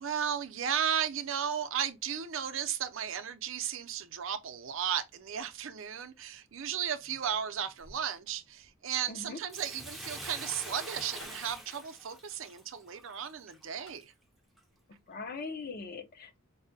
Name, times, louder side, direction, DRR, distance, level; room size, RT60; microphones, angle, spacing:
voice 1, 0.0-14.1, right 8 dB, 60° right, 0.5 m, -35 dB
sound 1, 6.9-8.4 8.6-8.7 9.0-9.1 10.5-11.7 13.4-13.5 13.7-14.3, equal, 65° left, 1.8 m, -57 dB
voice 2, 9.1-9.4 15.1-16.4, left 4 dB, 45° left, 0.6 m, -40 dB
Bathtub (filling or washing), 9.5-14.0 14.6-14.7, right 1 dB, ahead, 0.5 m, -45 dB
4.7 x 2.1 x 2.6 m
head